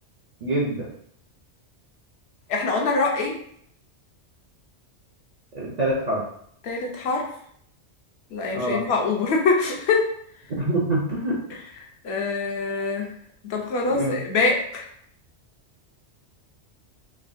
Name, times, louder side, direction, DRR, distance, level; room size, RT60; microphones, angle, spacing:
voice 1, 0.4-0.9 5.5-6.2 8.5-8.9 10.6-11.4 13.9-14.2, right 1 dB, 55° right, -4 dB, 0.5 m, -25 dB
voice 2, 2.5-3.4 6.6-7.3 8.3-10.1 12.0-13.1 13.4-14.9, left 3 dB, 70° left, 1 dB, 0.8 m, -24 dB
3.3 x 2.1 x 2.4 m, 0.66 s
omnidirectional pair, 1.2 m